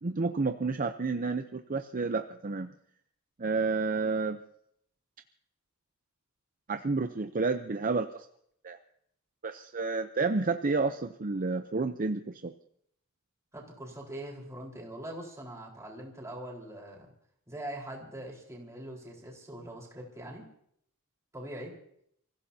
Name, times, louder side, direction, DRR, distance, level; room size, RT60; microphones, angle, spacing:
voice 1, 0.0-2.7 3.4-4.4 6.7-8.3 8.6-8.8 9.4-12.5, right 4 dB, 40° right, 7 dB, 0.7 m, -30 dB
voice 2, 13.5-17.1 17.5-20.5 21.3-21.7, right 1 dB, 15° right, -2 dB, 4.3 m, -42 dB
30.0 x 16.0 x 2.8 m, 0.70 s
head